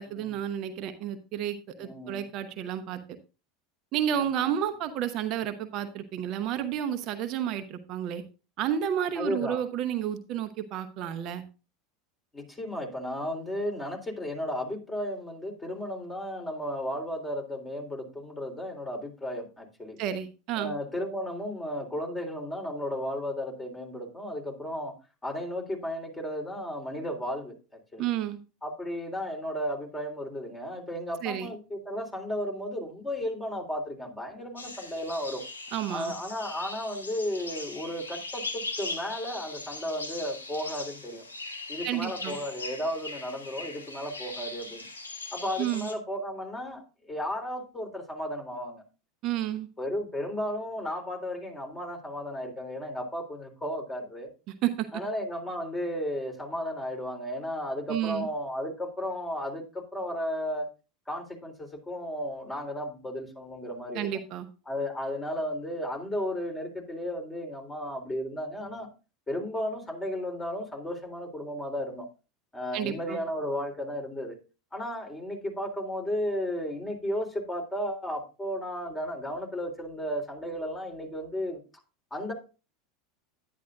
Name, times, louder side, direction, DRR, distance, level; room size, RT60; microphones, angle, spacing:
voice 1, 0.0-3.0 3.9-8.2 8.6-11.4 20.0-20.7 28.0-28.4 31.2-31.5 35.7-36.1 41.8-42.4 45.6-45.9 49.2-49.7 54.6-54.9 57.9-58.3 63.9-64.5 72.7-73.2, right 10 dB, 45° right, 8 dB, 0.9 m, -31 dB
voice 2, 1.8-2.2 4.1-4.6 9.2-9.6 12.3-20.0 20.6-24.9 25.2-27.6 27.9-28.0 28.6-35.4 35.9-41.2 41.7-44.9 45.3-48.8 49.8-54.3 54.9-60.7 61.1-64.1 64.7-68.9 69.3-72.1 72.5-74.4 74.7-81.6 82.1-82.3, equal, 15° left, 2 dB, 3.7 m, -34 dB
sound 1, 34.6-45.9, left 2 dB, 85° left, 1.5 m, -40 dB
10.5 x 10.5 x 2.5 m, 0.32 s
figure-of-eight pair, 80°, 0 cm